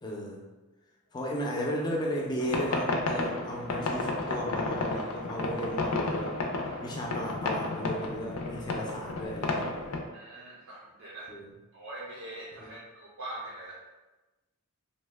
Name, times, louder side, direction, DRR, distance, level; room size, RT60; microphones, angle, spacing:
voice 1, 0.0-0.4 1.1-9.7 11.3-11.5 12.6-12.7, equal, 20° left, -1 dB, 0.4 m, -35 dB
sound 1, 2.4-10.0, left 2 dB, 85° left, 0.4 m, -32 dB
voice 2, 10.1-11.3 11.7-13.8, right 1 dB, 75° right, -6 dB, 0.6 m, -43 dB
2.6 x 2.1 x 3.3 m, 1.1 s
head